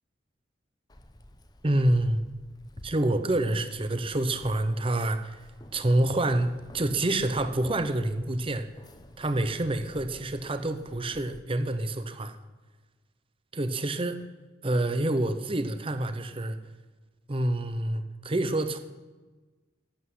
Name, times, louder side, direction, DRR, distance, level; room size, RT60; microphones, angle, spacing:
Keys jangling, 0.9-11.4, left 1 dB, 20° left, 0.8 m, -51 dB
voice 1, 1.6-2.2 2.8-5.4 5.7-8.7 9.2-12.4 13.5-14.2 14.6-16.6 17.3-18.8, right 1 dB, 25° right, 9 dB, 0.8 m, -27 dB
11.5 x 8.4 x 9.5 m, 1.3 s
head